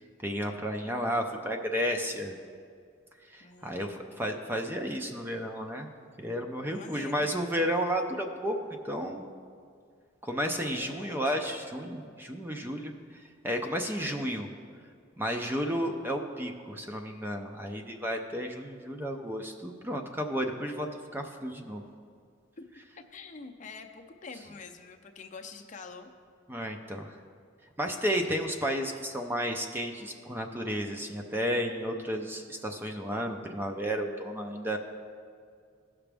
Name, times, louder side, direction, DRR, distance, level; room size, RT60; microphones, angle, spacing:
voice 1, 0.2-2.4 3.3-5.9 6.2-8.6 8.8-9.3 10.2-14.5 15.2-20.9 21.1-21.8 26.5-27.2 27.8-34.8, equal, 10° right, 3 dB, 0.5 m, -32 dB
voice 2, 3.4-4.3 6.6-7.3 10.7-11.3 22.6-22.7 23.0-26.1, left 4 dB, 40° left, 4 dB, 0.6 m, -46 dB
16.0 x 6.0 x 3.4 m, 2.2 s
head